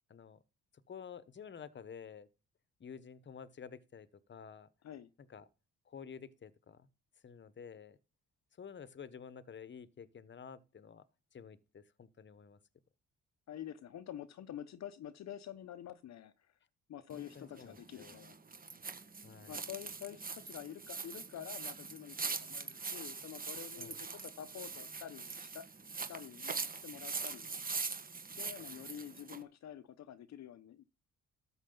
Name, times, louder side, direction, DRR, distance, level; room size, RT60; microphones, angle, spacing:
voice 1, 0.1-0.4 0.9-2.3 2.8-4.7 5.3-5.5 5.9-6.9 7.2-8.0 8.6-11.0 11.3-12.6 17.1-18.2 19.2-19.6 23.8-24.0, left 7 dB, 40° left, 1.2 m, -51 dB
voice 2, 13.5-16.5 16.9-18.4 19.5-25.7 26.1-27.6 28.4-30.8, left 10 dB, 65° left, 0.9 m, -48 dB
sound 1, 17.1-29.4, right 4 dB, 30° right, 1.6 m, -43 dB
13.0 x 8.1 x 3.9 m
cardioid pair, 90°, 30 cm